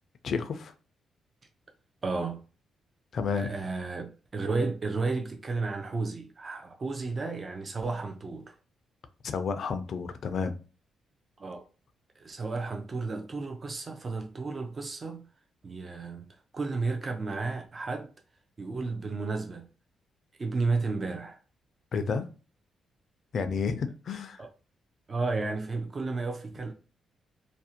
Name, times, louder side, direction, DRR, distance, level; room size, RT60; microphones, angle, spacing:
voice 1, 0.2-0.7 3.1-3.5 9.2-10.5 21.9-22.3 23.3-24.4, left 5 dB, 55° left, 0.4 m, -31 dB
voice 2, 2.0-2.4 3.3-8.5 11.4-11.6 12.2-15.2 15.6-16.3 16.5-18.1 18.6-19.7 20.4-21.4 24.4-24.5 25.1-26.7, right 3 dB, 35° right, 0.4 m, -32 dB
2.5 x 2.1 x 2.7 m
cardioid pair, 100°, 0 cm